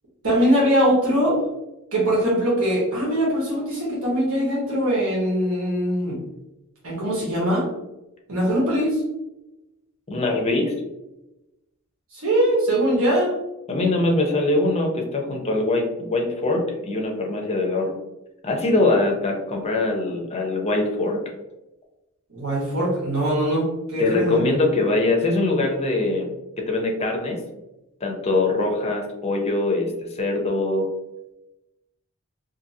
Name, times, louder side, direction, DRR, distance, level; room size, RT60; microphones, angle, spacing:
voice 1, 0.2-1.4 1.9-6.2 6.8-7.7 8.3-9.0 12.1-13.3 22.3-24.4, equal, 70° right, -5 dB, 1.2 m, -21 dB
voice 2, 10.1-10.7 13.7-17.9 18.4-21.2 24.0-26.3 26.6-27.4 28.0-30.9, left 2 dB, 30° left, 1 dB, 0.6 m, -22 dB
2.6 x 2.6 x 2.6 m, 0.96 s
head